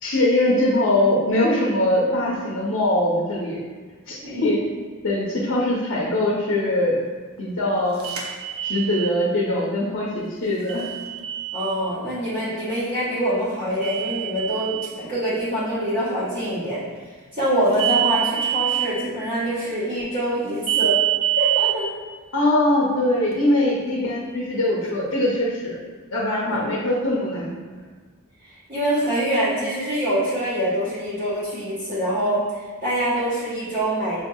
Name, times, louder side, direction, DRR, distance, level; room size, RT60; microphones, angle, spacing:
voice 1, 0.0-3.6 4.1-4.6 5.0-7.0 7.4-8.0 8.6-10.9 22.3-25.8 26.1-27.5, left 1 dB, 60° left, -5 dB, 0.7 m, -22 dB
sound 1, 8.0-9.1 10.7-11.8 13.8-14.9 17.7-18.9 20.7-21.7, right 14 dB, 70° right, 0.6 m, -24 dB
voice 2, 11.5-16.8 17.3-21.0 21.4-21.9 26.4-26.6 28.4-34.2, right 1 dB, 40° right, -14 dB, 1.1 m, -25 dB
6.4 x 2.7 x 2.3 m, 1.4 s
head